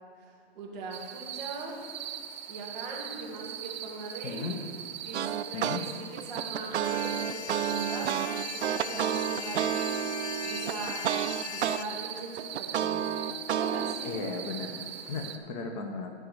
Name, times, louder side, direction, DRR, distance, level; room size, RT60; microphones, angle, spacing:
voice 1, 0.2-1.8 2.5-4.6 5.0-5.9 6.2-9.9 10.4-11.0 11.5-13.1 13.5-14.1, right 3 dB, ahead, -17 dB, 0.3 m, -40 dB
sound 1, 0.9-15.4, right 10 dB, 40° right, 0.9 m, -41 dB
voice 2, 4.2-4.6 5.5-5.8 14.0-16.1, left 4 dB, 30° left, 4 dB, 0.9 m, -36 dB
sound 2, 5.1-5.8 6.2-11.8 12.2-13.9, right 9 dB, 75° right, 0.6 m, -30 dB
sound 3, 6.8-11.8, left 7 dB, 80° left, 0.8 m, -40 dB
11.0 x 5.2 x 8.0 m, 2.3 s
hypercardioid pair, 150°, 34 cm